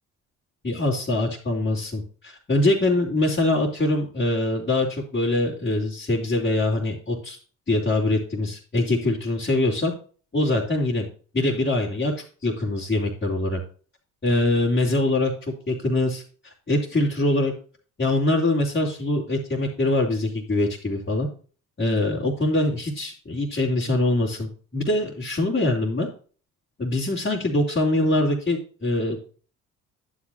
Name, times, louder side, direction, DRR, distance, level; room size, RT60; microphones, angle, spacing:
voice 1, 0.6-7.4 7.7-9.9 10.3-11.1 11.3-12.1 12.4-13.6 14.2-15.3 15.7-16.2 16.7-17.5 18.0-21.3 21.8-26.1 26.8-29.2, left 2 dB, 25° left, -6 dB, 3.3 m, -23 dB
11.0 x 8.6 x 2.6 m, 0.40 s
hypercardioid pair, 55°, 41 cm